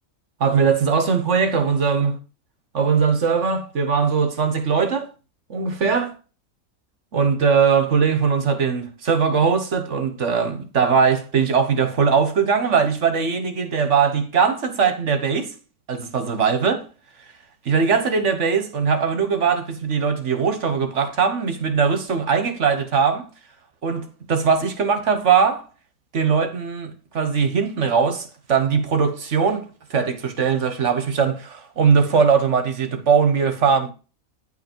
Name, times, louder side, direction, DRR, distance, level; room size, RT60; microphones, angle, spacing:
voice 1, 0.4-2.2 2.7-5.1 5.5-6.1 7.1-15.5 15.9-16.9 17.7-23.3 23.8-25.6 26.1-33.9, right 6 dB, 55° right, 1.5 m, -20 dB
10.5 x 5.7 x 4.5 m
omnidirectional pair, 1.5 m